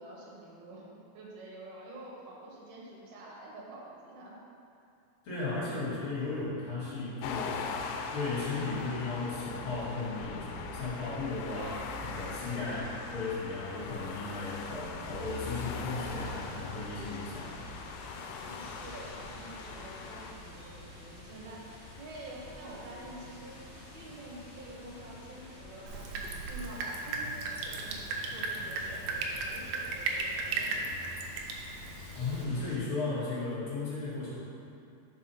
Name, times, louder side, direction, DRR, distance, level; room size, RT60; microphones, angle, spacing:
voice 1, 0.0-4.4 18.4-23.7 23.9-30.8 32.2-32.9, right 1 dB, 65° right, -4 dB, 1.8 m, -48 dB
voice 2, 5.2-7.7 8.1-17.5 32.1-34.3, left 3 dB, 45° left, -12 dB, 1.9 m, -35 dB
sound 1, 7.2-20.3, left 4 dB, 85° left, 2.6 m, -40 dB
sound 2, 15.0-32.8, left 2 dB, 65° left, 1.3 m, -49 dB
Drip, 25.9-32.5, right 3 dB, 85° right, 2.0 m, -36 dB
5.6 x 4.9 x 5.7 m, 2.6 s
omnidirectional pair, 4.7 m